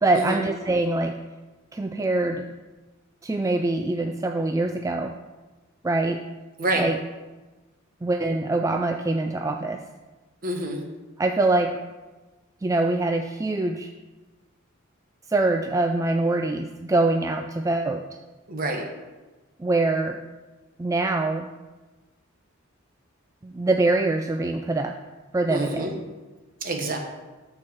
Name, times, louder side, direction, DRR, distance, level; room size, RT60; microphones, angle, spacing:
voice 1, 0.0-1.2 1.7-2.5 3.2-5.1 5.8-6.2 6.8-7.0 8.0-9.8 11.2-11.8 12.6-13.9 15.3-18.0 19.6-20.2 20.8-21.5 23.4-25.0 25.3-26.0, right 2 dB, 15° right, 4 dB, 0.3 m, -24 dB
voice 2, 10.4-10.8 18.5-18.9 25.5-25.9 26.6-27.0, right 1 dB, 45° right, 2 dB, 1.4 m, -27 dB
13.0 x 4.7 x 4.6 m, 1.2 s
head